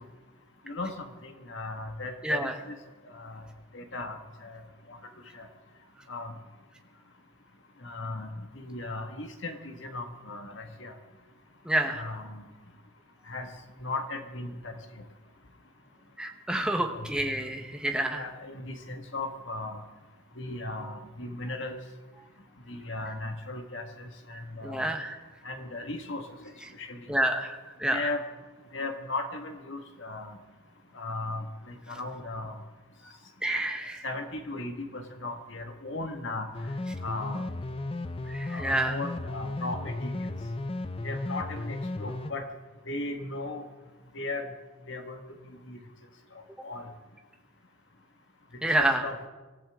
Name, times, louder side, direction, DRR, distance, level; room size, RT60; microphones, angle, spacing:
voice 1, 0.7-2.8 3.1-3.4 3.7-4.6 4.9-5.0 5.3-5.5 6.1-6.3 7.8-10.9 11.9-12.4 13.3-13.5 13.8-14.7 16.8-17.1 18.1-19.8 20.4-21.8 22.7-24.9 25.4-26.3 26.8-27.0 27.9-28.2 28.7-30.4 30.9-32.6 34.0-36.5 37.0-37.4 38.5-40.3 41.0-42.4 42.9-43.7 44.1-44.5 44.9-45.2 45.7-45.8 46.6-46.9 48.8-49.3, left 2 dB, 65° left, 5 dB, 1.8 m, -37 dB
voice 2, 11.7-12.0 16.2-18.2 24.6-25.2 27.1-28.0 33.4-34.0 38.3-39.0 48.6-49.0, right 1 dB, 5° right, 3 dB, 1.2 m, -28 dB
sound 1, 36.5-42.3, left 2 dB, 30° left, 0.6 m, -35 dB
25.0 x 15.0 x 3.7 m, 1.3 s
head